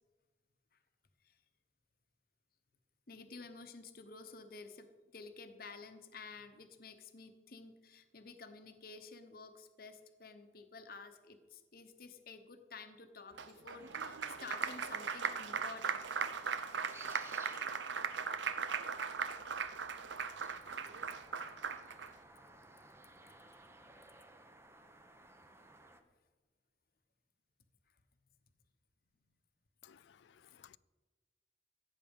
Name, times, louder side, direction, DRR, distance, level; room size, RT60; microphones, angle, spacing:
voice 1, 3.1-16.2, left 4 dB, 55° left, 1.0 m, -52 dB
Applause, 13.4-22.1, right 6 dB, 80° right, 0.7 m, -39 dB
sound 1, 13.8-26.0, right 2 dB, 15° right, 0.8 m, -59 dB
voice 2, 29.8-30.8, left 9 dB, 70° left, 0.4 m, -60 dB
16.0 x 8.4 x 5.4 m
head